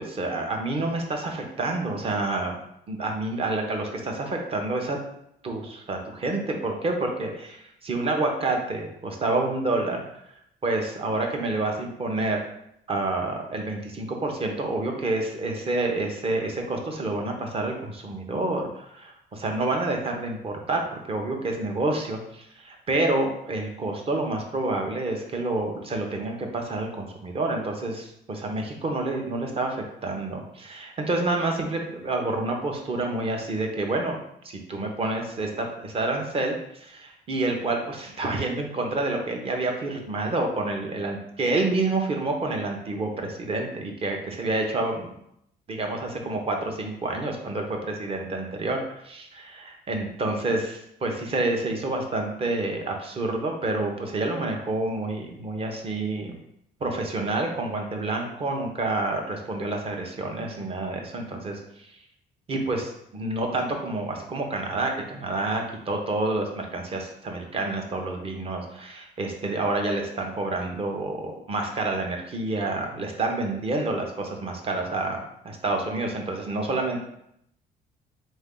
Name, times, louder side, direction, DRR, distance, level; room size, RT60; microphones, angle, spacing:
voice 1, 0.0-2.5 2.9-5.0 5.4-10.0 10.6-12.4 12.9-20.8 21.1-34.2 34.4-45.1 45.7-56.4 56.8-61.6 62.5-77.0, right 2 dB, 35° right, 2 dB, 0.8 m, -28 dB
4.1 x 2.7 x 3.6 m, 0.76 s
cardioid pair, 110°, 17 cm